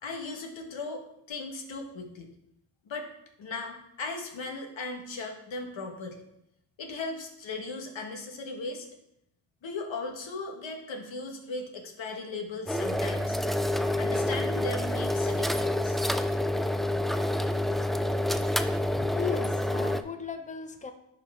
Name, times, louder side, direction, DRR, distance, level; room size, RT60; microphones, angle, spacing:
voice 1, 0.0-2.3 2.9-3.1 3.4-6.2 6.8-8.9 9.6-13.4 14.0-16.0, left 3 dB, 75° left, 3 dB, 1.5 m, -37 dB
sound 1, 12.7-20.0, left 1 dB, ahead, 0.4 m, -28 dB
voice 2, 18.8-20.9, left 6 dB, 15° left, 7 dB, 0.8 m, -36 dB
11.0 x 5.2 x 3.6 m, 0.80 s
cardioid pair, 60°, 46 cm